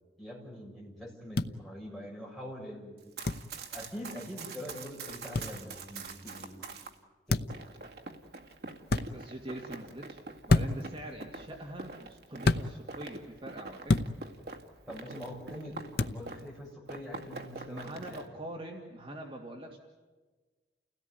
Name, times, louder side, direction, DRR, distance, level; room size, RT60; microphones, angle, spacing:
voice 1, 0.2-3.0 3.7-6.7 7.3-7.6 14.9-15.8 16.1-18.2, equal, ahead, -4 dB, 6.8 m, -44 dB
sound 1, 1.4-1.5 3.2-3.4 5.3-5.5 7.3-7.6 8.9-9.1 10.5-10.9 12.4-12.7 13.9-14.1 16.0-16.2, left 2 dB, 60° left, 0.8 m, -26 dB
Run, 3.0-6.9 7.5-16.6 16.9-18.2, right 3 dB, 60° right, 2.1 m, -45 dB
voice 2, 9.1-14.0 17.7-19.8, right 1 dB, 30° right, 0 dB, 2.2 m, -43 dB
29.5 x 17.0 x 9.4 m, 1.3 s
head